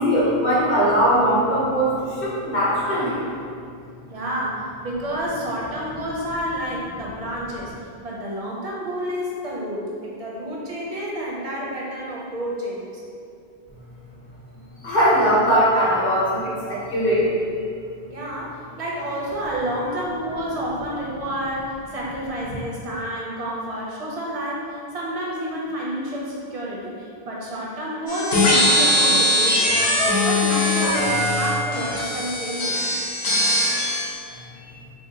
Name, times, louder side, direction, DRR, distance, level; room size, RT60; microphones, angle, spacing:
voice 1, 0.0-3.3 14.8-17.3 19.7-20.0 34.7-34.8, equal, 50° left, -7 dB, 0.9 m, -20 dB
voice 2, 4.1-7.7 8.0-13.0 18.1-30.0 30.3-32.8, equal, 50° right, -4 dB, 0.5 m, -29 dB
sound 1, 28.1-34.1, left 1 dB, 80° left, 0.9 m, -20 dB
3.2 x 2.6 x 2.6 m, 2.4 s
omnidirectional pair, 1.0 m